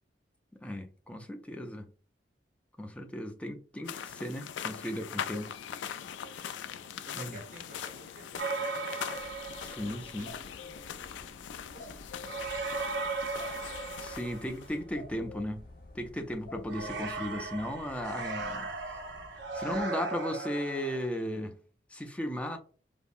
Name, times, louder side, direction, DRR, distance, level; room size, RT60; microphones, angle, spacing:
voice 1, 0.6-1.9 2.8-5.6 7.2-7.4 9.6-10.3 14.0-15.6 15.9-18.7 19.5-21.5 21.9-22.6, equal, 5° left, 0.4 m, -36 dB
sound 1, 3.9-14.8, left 9 dB, 90° left, 0.3 m, -41 dB
voice 2, 6.2-9.2 9.6-12.1, right 2 dB, 45° right, 0.7 m, -53 dB
sound 2, 8.4-10.1 12.2-14.8 16.7-21.1, right 4 dB, 85° right, 0.7 m, -37 dB
sound 3, 9.1-19.9, left 2 dB, 55° left, 0.9 m, -50 dB
5.1 x 2.1 x 2.4 m
head